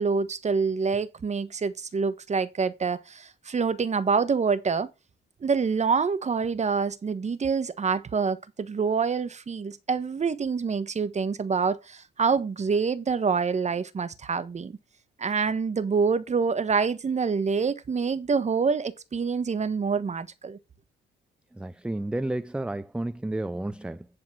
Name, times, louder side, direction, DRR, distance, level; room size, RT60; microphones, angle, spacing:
voice 1, 0.0-4.9 5.4-14.8 15.2-20.6, right 5 dB, 35° right, 1.2 m, -26 dB
voice 2, 21.5-24.1, right 1 dB, 5° right, 0.4 m, -31 dB
11.0 x 4.0 x 6.1 m
cardioid pair, 90°, 20 cm